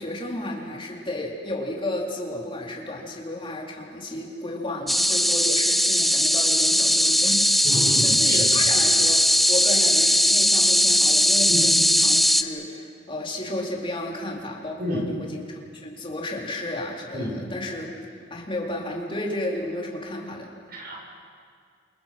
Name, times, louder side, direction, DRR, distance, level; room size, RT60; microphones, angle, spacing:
voice 1, 0.0-7.7 8.0-17.9 18.3-20.5, left 1 dB, 30° left, -2 dB, 4.1 m, -32 dB
sound 1, 4.9-12.4, left 1 dB, ahead, 0.8 m, -19 dB
voice 2, 7.6-8.4 11.5-11.6 14.8-15.0 17.1-17.4 20.7-21.0, equal, 55° right, -2 dB, 7.7 m, -29 dB
28.0 x 28.0 x 6.1 m, 2.2 s
head